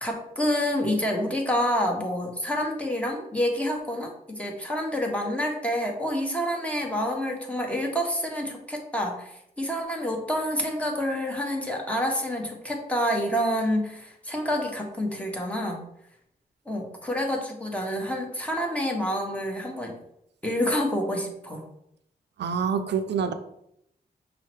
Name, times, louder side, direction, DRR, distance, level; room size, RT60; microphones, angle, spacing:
voice 1, 0.0-15.8 16.7-19.9 20.4-21.6, equal, 5° left, 1 dB, 1.2 m, -28 dB
voice 2, 22.4-23.3, right 6 dB, 80° right, 9 dB, 0.4 m, -26 dB
5.4 x 2.1 x 4.6 m, 0.77 s
cardioid pair, 55°, 17 cm